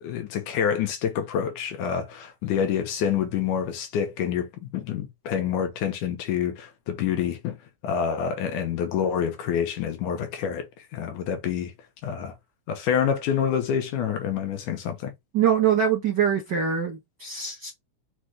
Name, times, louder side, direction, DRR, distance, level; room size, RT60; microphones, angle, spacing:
voice 1, 0.0-7.6 7.8-11.7 12.0-12.3 12.7-15.1, left 8 dB, 80° left, 2.4 m, -27 dB
voice 2, 15.3-17.7, right 8 dB, 65° right, 1.0 m, -23 dB
5.9 x 2.5 x 3.3 m
omnidirectional pair, 3.5 m